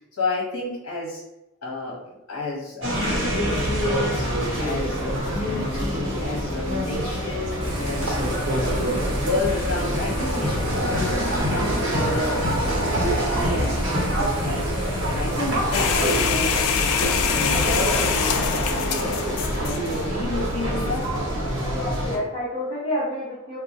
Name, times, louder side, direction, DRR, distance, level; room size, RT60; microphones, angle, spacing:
voice 1, 0.2-1.2 1.6-2.0 2.3-4.3 4.6-8.2 8.6-11.1 11.4-12.4 12.6-14.7 15.1-19.2 19.6-21.1, left 2 dB, 60° left, -4 dB, 0.9 m, -31 dB
sound 1, 2.8-22.2, equal, 55° right, 0.9 m, -25 dB
Thunder / Rain, 7.6-16.2, right 1 dB, 20° right, 0.5 m, -34 dB
sound 2, 15.7-21.0, left 6 dB, 85° left, 0.3 m, -25 dB
voice 2, 21.7-23.6, left 1 dB, 25° left, -9 dB, 0.7 m, -29 dB
3.6 x 2.0 x 2.7 m, 0.95 s
head